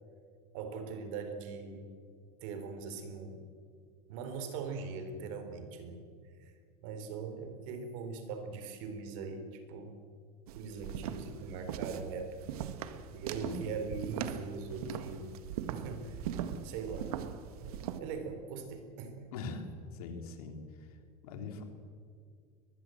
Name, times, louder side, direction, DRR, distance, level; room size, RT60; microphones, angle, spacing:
voice 1, 0.5-1.9 2.4-3.5 4.1-6.0 6.4-6.5 6.8-10.0 10.6-12.4 13.1-15.3 15.7-16.3 16.6-17.1 17.6-19.3, right 5 dB, 65° right, 8 dB, 3.9 m, -41 dB
sound 1, 10.5-18.0, right 9 dB, 85° right, 1.7 m, -40 dB
voice 2, 13.4-13.7 19.3-21.0 21.2-21.6, left 3 dB, 85° left, 5 dB, 3.6 m, -42 dB
22.5 x 20.0 x 7.8 m, 2.2 s
supercardioid pair, 150°, 18 cm